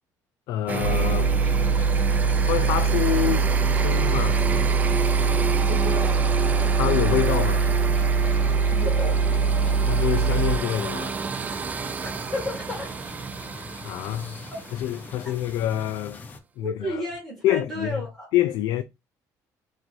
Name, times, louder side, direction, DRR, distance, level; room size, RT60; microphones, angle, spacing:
voice 1, 0.5-1.3 2.4-4.4 6.7-7.7 9.8-11.2 13.8-14.4 14.8-16.2 16.6-17.0 17.4-18.0 18.3-18.8, left 12 dB, 75° left, 0.3 m, -26 dB
sound 1, 0.7-15.4, right 5 dB, 25° right, 0.3 m, -31 dB
sound 2, 0.8-10.6, right 5 dB, 75° right, 0.9 m, -22 dB
sound 3, 0.9-16.4, left 3 dB, 25° left, 0.6 m, -43 dB
voice 2, 5.6-6.2 8.7-9.2 12.0-12.9 16.6-18.3, left 1 dB, 10° left, 1.9 m, -32 dB
4.6 x 2.9 x 2.6 m
cardioid pair, 150°, 7 cm